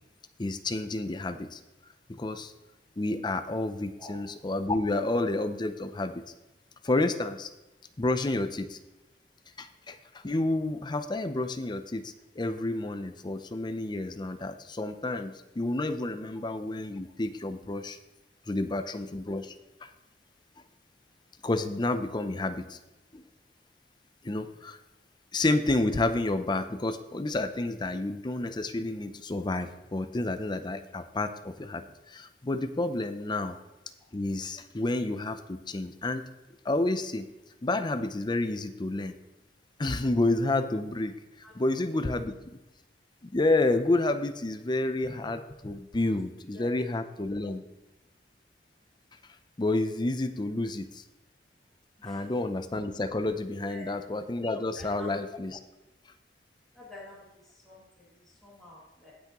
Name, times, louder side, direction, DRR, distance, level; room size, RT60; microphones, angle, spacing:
voice 1, 0.4-1.6 2.1-2.5 3.0-6.2 6.8-7.5 8.0-8.8 9.6-10.0 10.2-18.0 18.5-19.5 21.4-22.8 23.1-23.2 24.2-24.8 25.3-33.5 34.1-36.2 36.6-37.3 37.6-39.2 39.8-41.1 41.6-42.4 43.2-47.6 49.6-51.0 52.0-55.6, left 2 dB, 25° left, 9 dB, 0.5 m, -30 dB
voice 2, 54.5-55.1 56.7-59.1, left 2 dB, ahead, -7 dB, 2.3 m, -49 dB
17.0 x 5.9 x 3.0 m, 1.0 s
head